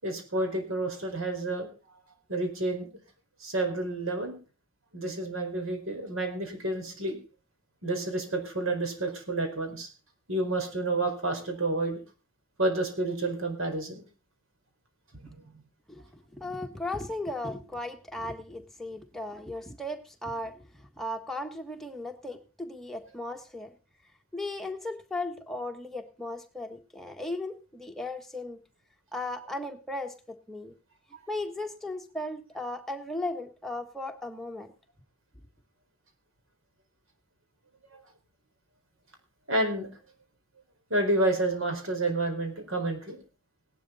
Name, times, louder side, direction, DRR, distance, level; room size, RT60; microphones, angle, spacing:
voice 1, 0.0-2.9 3.4-4.4 4.9-7.2 7.8-9.9 10.3-12.0 12.6-14.0 15.1-15.5 39.5-39.9 40.9-43.2, right 2 dB, 70° right, 5 dB, 4.7 m, -30 dB
voice 2, 15.9-23.7 24.3-28.6 29.1-30.7 31.3-34.7, left 2 dB, ahead, 3 dB, 1.5 m, -36 dB
17.5 x 12.0 x 3.9 m, 0.34 s
head